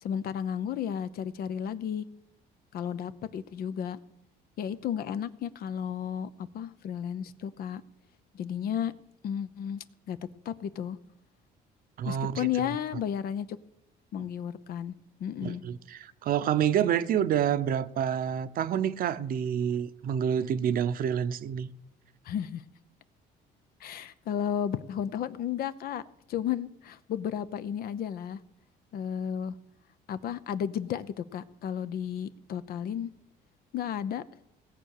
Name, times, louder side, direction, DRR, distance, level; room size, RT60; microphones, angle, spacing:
voice 1, 0.0-2.0 2.7-4.0 4.6-7.8 8.3-8.9 9.2-10.2 10.4-11.0 12.0-13.6 14.1-14.9 15.2-15.6 22.2-22.6 23.8-26.0 26.3-28.4 28.9-29.5 30.1-33.1 33.7-34.2, left 9 dB, 65° left, 0.8 m, -33 dB
voice 2, 12.0-12.5 15.4-21.7, right 9 dB, 60° right, 0.8 m, -28 dB
17.5 x 7.7 x 6.6 m
cardioid pair, 110°, 17 cm